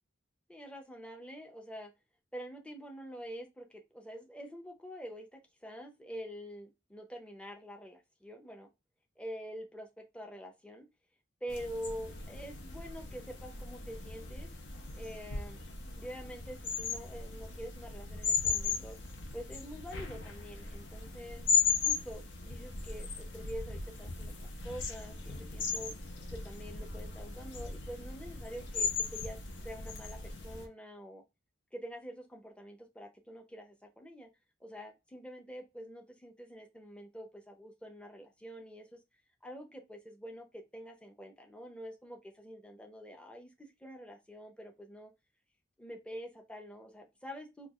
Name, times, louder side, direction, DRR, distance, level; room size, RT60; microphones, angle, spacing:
voice 1, 0.5-1.9 2.3-8.7 9.2-10.9 11.4-14.5 14.9-15.6 16.0-19.0 19.3-21.4 21.8-25.9 26.3-31.2 31.7-34.3 34.6-39.0 39.4-45.1 45.8-47.7, equal, 5° left, 3 dB, 0.6 m, -46 dB
sound 1, 11.5-30.7, left 5 dB, 70° left, 0.8 m, -37 dB
4.5 x 2.3 x 2.4 m, 0.24 s
head